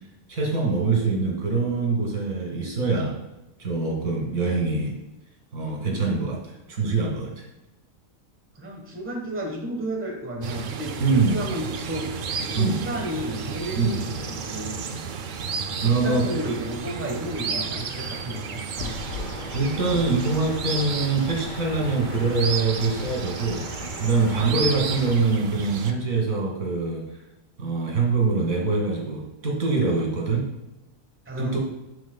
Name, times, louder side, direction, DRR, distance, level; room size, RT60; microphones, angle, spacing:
voice 1, 0.3-3.2 3.6-5.0 5.5-7.4 11.0-11.4 12.6-12.8 13.8-13.9 15.8-16.3 19.5-23.7 24.0-27.0 27.6-30.5 31.4-31.6, right 4 dB, 80° right, 0 dB, 2.1 m, -24 dB
voice 2, 8.6-12.1 12.4-14.7 15.7-19.0 24.5-24.7 31.3-31.6, right 1 dB, 10° right, 1 dB, 1.0 m, -33 dB
sound 1, 10.4-25.9, right 5 dB, 60° right, 0.5 m, -33 dB
sound 2, 18.8-25.2, left 4 dB, 75° left, 1.3 m, -38 dB
10.0 x 6.3 x 2.2 m, 0.97 s
omnidirectional pair, 1.4 m